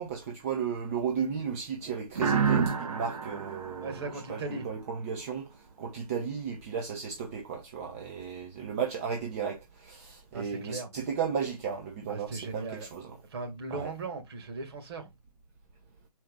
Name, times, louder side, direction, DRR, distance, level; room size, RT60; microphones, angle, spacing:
voice 1, 0.0-4.0 4.3-5.5 5.8-13.1 13.7-13.9, right 7 dB, 25° right, 0.7 m, -34 dB
sound 1, 2.2-4.8, right 6 dB, 55° right, 1.6 m, -30 dB
voice 2, 3.8-4.7 10.3-10.9 12.1-12.9 13.2-15.1, right 3 dB, 40° right, 2.3 m, -38 dB
6.0 x 4.5 x 3.7 m
figure-of-eight pair, 145°, 21 cm